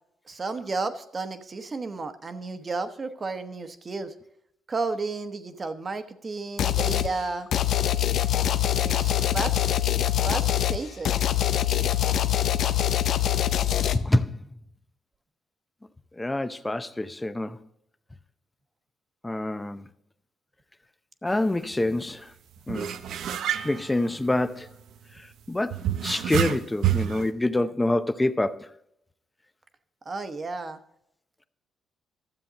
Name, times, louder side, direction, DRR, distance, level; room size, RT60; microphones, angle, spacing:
voice 1, 0.3-4.1 4.7-7.5 8.8-9.7 10.2-11.2 30.0-30.8, right 3 dB, 35° right, 1.1 m, -32 dB
sound 1, 6.6-7.1 7.5-14.0, left 12 dB, 70° left, 0.6 m, -24 dB
voice 2, 13.9-14.4 16.2-17.6 19.2-19.9 21.2-22.3 22.7-22.9 23.6-24.7 25.2-28.7, left 1 dB, 15° left, 0.6 m, -26 dB
sound 2, 21.3-21.4 21.7-21.9 22.7-24.8 25.7-27.3, right 11 dB, 75° right, 0.6 m, -28 dB
13.0 x 7.5 x 4.0 m
cardioid pair, 90°, 0 cm